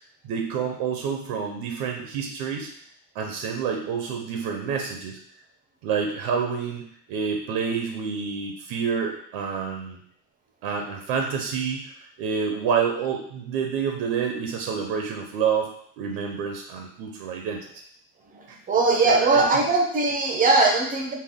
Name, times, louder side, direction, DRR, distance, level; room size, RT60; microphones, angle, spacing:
voice 1, 0.2-2.7 3.1-5.2 5.8-10.0 10.6-11.8 12.2-15.7 16.0-17.7 18.5-18.6 19.0-19.6, right 6 dB, 65° right, 2 dB, 0.8 m, -28 dB
voice 2, 18.3-21.1, right 3 dB, 20° right, 1 dB, 0.6 m, -20 dB
4.3 x 2.3 x 3.6 m, 0.62 s
cardioid pair, 140°, 46 cm